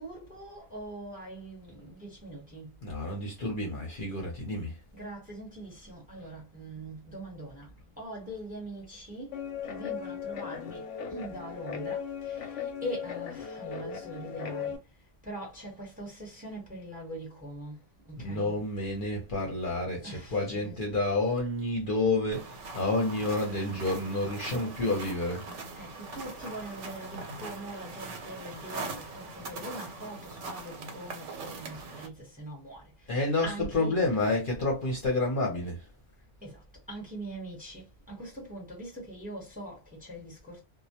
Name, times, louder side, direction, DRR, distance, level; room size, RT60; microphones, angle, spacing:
voice 1, 0.0-2.8 4.9-18.7 20.0-21.2 25.8-34.2 36.4-40.6, right 1 dB, 10° right, 0.8 m, -42 dB
voice 2, 2.8-4.8 18.2-25.4 33.1-35.9, left 2 dB, 50° left, 0.8 m, -29 dB
Guitar, 9.3-14.8, left 7 dB, 85° left, 0.9 m, -37 dB
sound 1, 22.3-32.1, right 3 dB, 80° right, 0.9 m, -41 dB
2.1 x 2.1 x 2.8 m
omnidirectional pair, 1.2 m